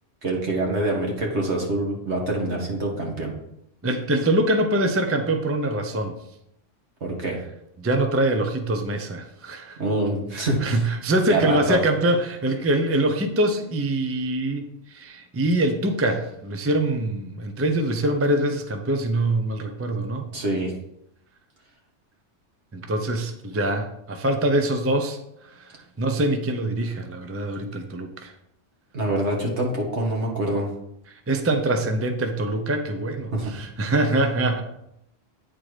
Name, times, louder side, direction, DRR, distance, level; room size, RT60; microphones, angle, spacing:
voice 1, 0.2-3.3 7.0-7.4 9.8-10.8 11.3-11.8 20.3-20.7 28.9-30.7 33.3-33.5, right 1 dB, 65° right, -1 dB, 2.1 m, -25 dB
voice 2, 3.8-6.1 7.8-9.8 10.3-20.3 22.7-28.3 31.1-34.6, right 1 dB, 15° right, 5 dB, 0.5 m, -24 dB
9.1 x 4.2 x 4.9 m, 0.78 s
omnidirectional pair, 1.2 m